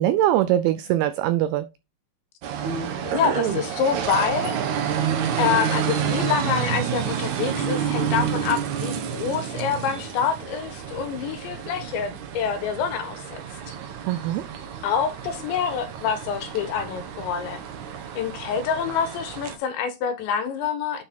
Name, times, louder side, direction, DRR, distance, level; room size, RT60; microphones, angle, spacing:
voice 1, 0.0-1.7 14.0-14.4, right 13 dB, 90° right, 2.2 m, -22 dB
sound 1, 2.4-19.6, right 8 dB, 70° right, 1.9 m, -29 dB
voice 2, 3.0-4.6 5.4-13.4 14.8-17.6 18.2-21.0, left 7 dB, 90° left, 3.5 m, -26 dB
9.5 x 4.3 x 4.5 m
omnidirectional pair, 5.0 m